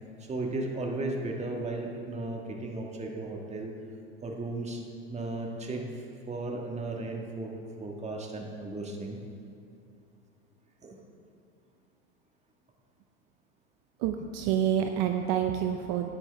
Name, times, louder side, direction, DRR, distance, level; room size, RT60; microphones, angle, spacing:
voice 1, 0.3-3.7 4.2-4.8 5.1-5.8 6.3-7.5 7.8-9.2 10.8-11.0, right 2 dB, 20° right, 1 dB, 1.7 m, -35 dB
voice 2, 14.0-16.1, right 9 dB, 60° right, 6 dB, 0.7 m, -28 dB
12.0 x 9.7 x 3.5 m, 2.7 s
hypercardioid pair, 95°, 32 cm